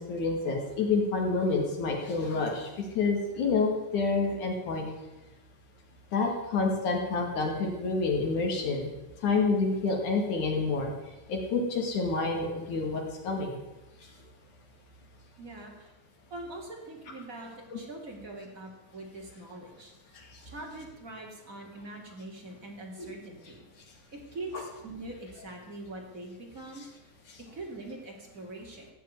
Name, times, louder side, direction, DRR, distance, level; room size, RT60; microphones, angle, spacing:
voice 1, 0.0-4.9 6.1-8.9 9.2-10.9 11.3-13.6 17.7-17.8 20.1-20.4 23.0-23.1 27.3-27.4, left 3 dB, 50° left, 1 dB, 3.2 m, -28 dB
voice 2, 15.4-15.9 16.3-20.2 20.4-23.9 24.1-26.8 27.5-28.9, right 2 dB, 25° right, -1 dB, 2.2 m, -43 dB
16.5 x 6.8 x 9.5 m, 1.1 s
omnidirectional pair, 5.1 m